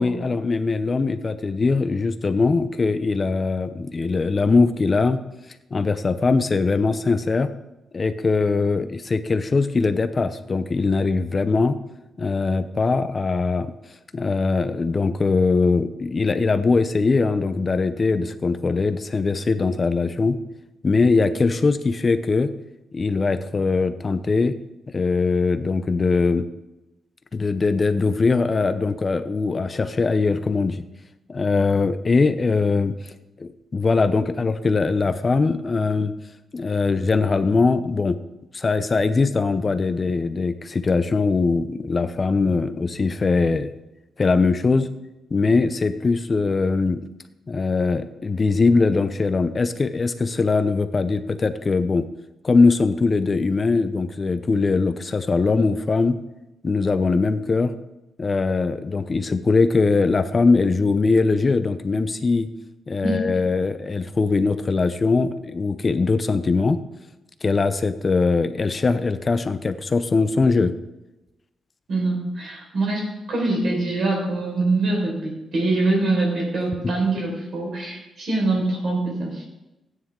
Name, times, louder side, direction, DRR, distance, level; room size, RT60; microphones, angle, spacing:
voice 1, 0.0-5.2 5.7-7.5 7.9-11.8 12.2-13.7 14.1-20.4 20.8-22.5 22.9-24.5 24.9-26.5 27.3-30.8 31.3-36.1 36.5-38.2 38.5-43.7 44.2-44.9 45.3-47.0 47.5-52.1 52.4-56.2 56.6-57.7 58.2-62.5 62.9-66.8 67.4-70.7, left 4 dB, 30° left, 11 dB, 0.6 m, -21 dB
voice 2, 71.9-79.4, right 2 dB, 55° right, -1 dB, 4.7 m, -24 dB
15.5 x 9.5 x 3.7 m, 0.98 s
wide cardioid pair, 140°, 0 cm